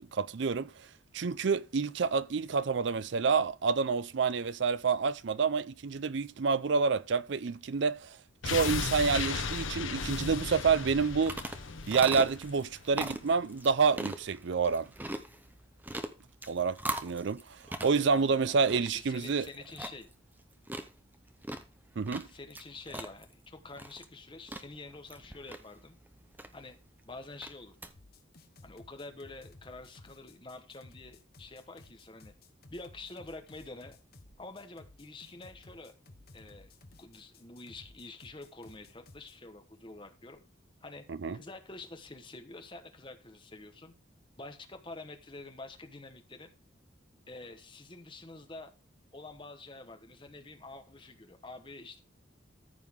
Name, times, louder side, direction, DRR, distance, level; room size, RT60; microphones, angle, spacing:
voice 1, 0.1-0.7 1.1-8.2 8.4-11.4 11.9-14.9 16.5-17.6 17.8-19.5 22.0-22.3 41.1-41.4, right 5 dB, 65° right, 0.5 m, -28 dB
sound 1, 8.4-13.4 13.7-13.8, left 5 dB, 80° left, 0.8 m, -36 dB
sound 2, 10.8-27.9, right 1 dB, 10° right, 0.6 m, -42 dB
voice 2, 17.9-20.1 22.2-26.0 26.5-26.8 27.1-27.8 28.6-32.3 32.7-34.0 34.4-35.9 36.3-36.7 37.0-40.4 40.8-41.0 41.3-43.9 44.4-46.5 47.3-48.7 49.1-52.0, left 2 dB, 25° left, 1.1 m, -47 dB
sound 3, 27.9-39.4, left 2 dB, 50° left, 1.1 m, -56 dB
14.0 x 5.6 x 3.6 m
head